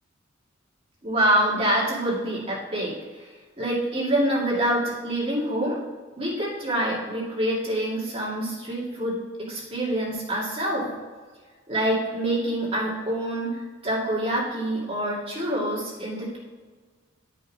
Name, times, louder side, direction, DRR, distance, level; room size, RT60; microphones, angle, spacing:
voice 1, 1.0-3.2 3.6-5.8 6.2-10.9 11.7-16.4, right 1 dB, 30° right, -7 dB, 2.4 m, -26 dB
11.5 x 5.4 x 4.2 m, 1.5 s
head